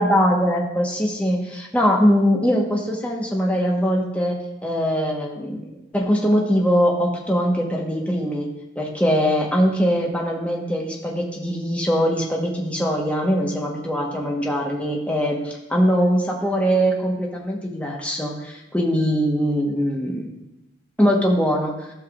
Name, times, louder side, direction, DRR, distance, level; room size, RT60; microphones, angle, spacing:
voice 1, 0.0-1.4 1.7-4.4 4.6-8.5 8.8-20.3 21.0-21.7, equal, 5° left, -2 dB, 1.1 m, -21 dB
13.5 x 5.8 x 2.4 m, 0.94 s
head